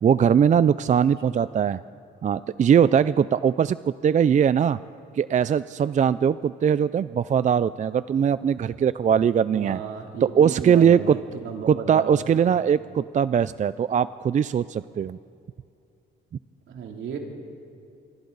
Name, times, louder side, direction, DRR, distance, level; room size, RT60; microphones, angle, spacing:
voice 1, 0.0-1.8 2.2-4.8 5.2-9.8 10.2-11.2 11.7-15.2, right 8 dB, 40° right, 16 dB, 0.4 m, -21 dB
voice 2, 9.5-12.4 16.7-17.2, right 6 dB, 75° right, 1 dB, 3.1 m, -34 dB
26.5 x 25.0 x 4.0 m, 2.6 s
cardioid pair, 90°, 20 cm